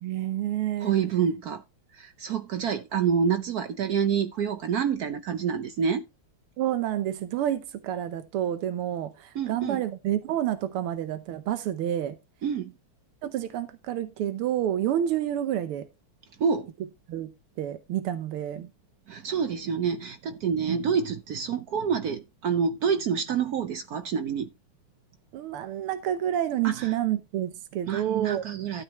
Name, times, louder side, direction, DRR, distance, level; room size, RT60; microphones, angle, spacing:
voice 1, 0.0-1.0 6.6-12.2 13.2-15.9 17.1-17.3 17.6-18.7 20.7-20.8 25.3-28.5, right 11 dB, 90° right, 1.7 m, -29 dB
voice 2, 0.8-1.6 2.0-6.0 9.3-9.8 12.4-12.7 16.4-16.7 19.1-24.5 26.6-26.9 27.9-28.8, right 7 dB, 70° right, 0.9 m, -27 dB
12.5 x 8.0 x 2.9 m
omnidirectional pair, 2.4 m